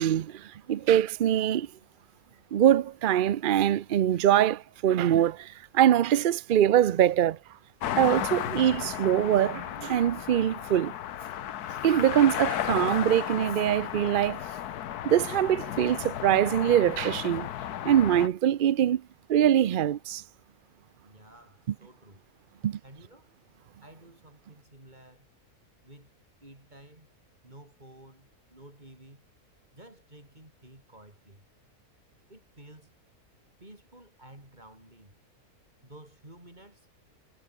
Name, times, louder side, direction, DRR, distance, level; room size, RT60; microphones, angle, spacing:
voice 1, 0.0-1.7 2.5-7.4 8.0-10.9 11.8-14.4 15.0-17.5 17.8-19.0 19.3-20.2 22.6-22.8, right 11 dB, 80° right, 0.4 m, -23 dB
sound 1, 7.8-18.3, left 11 dB, 90° left, 1.4 m, -34 dB
voice 2, 21.0-23.3 23.8-25.3 25.8-27.1 27.4-29.2 29.7-31.4 32.3-33.0 33.6-35.2 35.8-36.9, right 1 dB, 30° right, 6.2 m, -52 dB
omnidirectional pair, 1.6 m